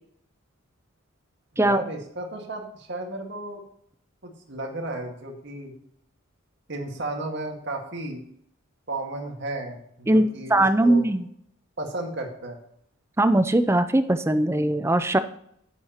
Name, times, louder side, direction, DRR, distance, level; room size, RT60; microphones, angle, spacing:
voice 1, 1.5-3.6 4.2-5.7 6.7-8.2 8.9-10.5 10.8-11.1 11.8-12.6, right 2 dB, 55° right, 2 dB, 1.8 m, -34 dB
voice 2, 10.5-11.3 13.2-15.2, right 1 dB, 10° right, 10 dB, 0.5 m, -20 dB
9.5 x 9.4 x 3.0 m, 0.68 s
head